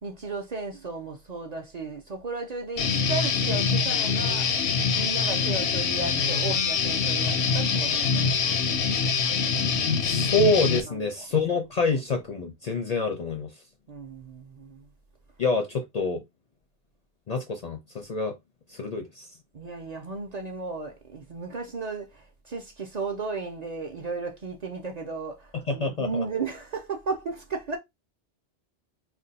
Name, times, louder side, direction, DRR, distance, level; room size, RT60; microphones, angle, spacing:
voice 1, 0.0-4.5 5.0-8.4 10.8-11.2 13.9-14.9 19.5-27.8, right 4 dB, 45° right, 0.6 m, -35 dB
Guitar, 2.8-10.8, left 5 dB, 80° left, 0.9 m, -24 dB
voice 2, 10.0-13.5 15.4-16.2 17.3-18.3 18.8-19.3 25.7-26.2, left 3 dB, 50° left, 0.5 m, -26 dB
2.5 x 2.3 x 3.9 m
omnidirectional pair, 1.1 m